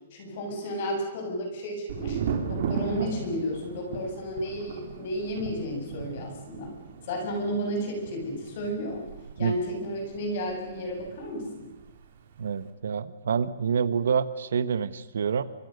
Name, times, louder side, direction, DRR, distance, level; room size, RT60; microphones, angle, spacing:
voice 1, 0.1-2.2 2.5-6.7 7.0-9.0 9.4-11.7, equal, 35° left, 2 dB, 7.7 m, -32 dB
Thunder, 1.9-11.5 11.8-12.5, right 6 dB, 45° right, 4.0 m, -36 dB
voice 2, 12.4-15.4, right 7 dB, 70° right, 14 dB, 1.5 m, -27 dB
28.5 x 25.5 x 6.7 m, 1.1 s
hypercardioid pair, 180°, 0 cm